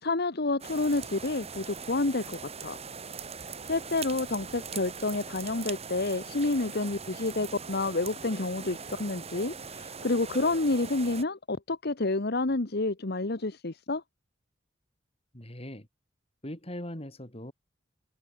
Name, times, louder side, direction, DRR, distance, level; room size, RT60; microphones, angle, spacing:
voice 1, 0.0-2.8 3.4-14.0, left 2 dB, 55° left, 1.3 m, -29 dB
sound 1, 0.6-11.2, right 5 dB, 35° right, 1.9 m, -41 dB
voice 2, 15.3-15.9 16.4-17.5, left 1 dB, 30° left, 5.1 m, -40 dB
head